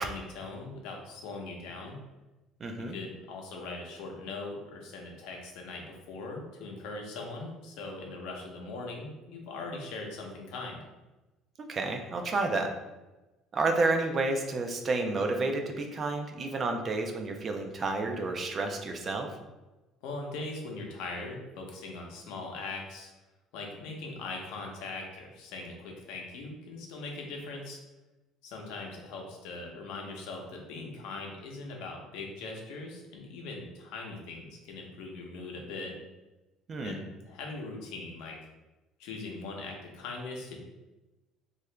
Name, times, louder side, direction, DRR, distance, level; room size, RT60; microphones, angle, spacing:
voice 1, 0.0-2.0 2.8-10.8 20.0-23.1 23.5-27.8 28.4-35.9 36.8-38.4 39.0-40.6, left 3 dB, 80° left, 1 dB, 0.7 m, -40 dB
voice 2, 2.6-3.0 11.7-12.7 13.5-19.3 36.7-36.9, right 3 dB, 25° right, 4 dB, 0.3 m, -30 dB
2.8 x 2.4 x 3.2 m, 1.1 s
cardioid pair, 165°, 0 cm